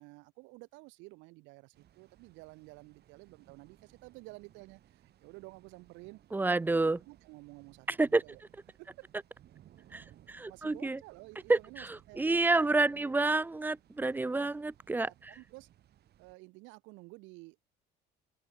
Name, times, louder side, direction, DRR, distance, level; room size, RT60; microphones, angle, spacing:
voice 1, 0.0-6.2 6.8-8.4 8.8-9.1 10.3-12.5 12.9-13.3 15.0-15.7 16.2-17.8, right 24 dB, 80° right, 1.6 m, -52 dB
sound 1, 1.7-16.4, right 12 dB, 55° right, 7.7 m, -62 dB
voice 2, 6.3-7.0 8.0-8.2 9.9-11.0 11.5-15.3, right 3 dB, 10° right, 0.5 m, -29 dB
open air
supercardioid pair, 100°, 19 cm